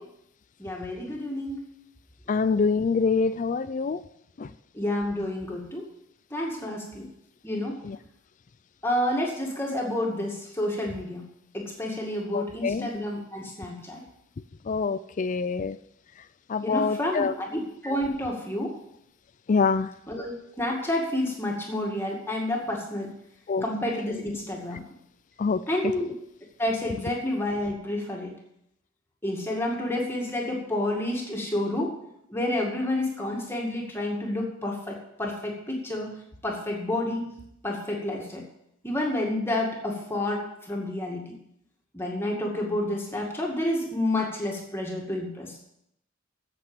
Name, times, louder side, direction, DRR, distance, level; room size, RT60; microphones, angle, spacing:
voice 1, 0.6-1.6 4.7-5.9 6.3-7.1 7.4-7.8 8.8-11.3 11.5-14.0 16.6-18.8 20.1-23.1 23.6-24.8 25.7-26.1 26.6-28.3 29.2-32.0 32.3-36.2 36.4-37.4 37.6-38.4 38.8-41.3 41.9-45.5, left 1 dB, 10° left, 2.1 m, -29 dB
voice 2, 2.3-4.0 4.4-4.5 7.8-8.0 12.3-12.9 14.7-15.8 16.5-17.3 19.5-19.9 23.5-23.6 25.4-25.9, left 5 dB, 40° left, 0.4 m, -25 dB
8.6 x 8.0 x 8.8 m
head